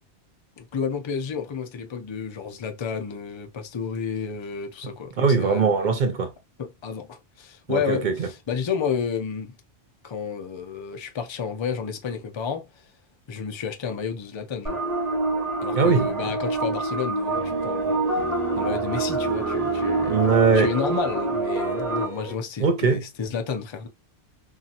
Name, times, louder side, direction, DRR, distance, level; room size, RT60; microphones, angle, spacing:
voice 1, 0.6-6.0 6.6-9.6 10.0-12.8 13.3-14.8 15.6-18.2 18.6-20.2 20.5-23.9, left 6 dB, 50° left, 0.3 m, -31 dB
voice 2, 5.2-6.3 7.7-8.3 15.7-16.4 20.1-20.7 22.6-23.0, right 5 dB, 55° right, 0.6 m, -21 dB
sound 1, 14.7-22.0, right 2 dB, 35° right, 1.4 m, -26 dB
sound 2, 17.3-22.4, right 5 dB, 70° right, 0.9 m, -34 dB
2.7 x 2.7 x 2.4 m
omnidirectional pair, 1.2 m